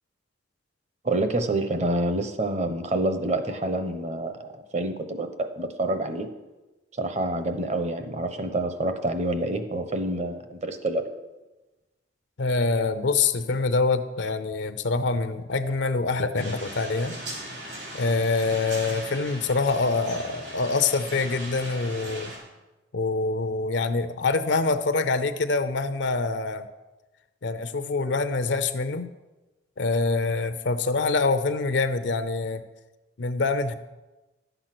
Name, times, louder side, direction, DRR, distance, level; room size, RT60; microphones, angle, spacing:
voice 1, 1.0-6.3 7.0-11.1, right 2 dB, 35° right, 9 dB, 0.9 m, -27 dB
voice 2, 12.4-17.2 17.9-22.3 22.9-26.7 27.4-29.1 29.8-32.6 33.2-33.7, left 3 dB, 75° left, 10 dB, 0.6 m, -25 dB
sound 1, 16.3-22.4, right 1 dB, 70° right, 3.8 m, -39 dB
11.5 x 8.0 x 6.0 m, 1.1 s
head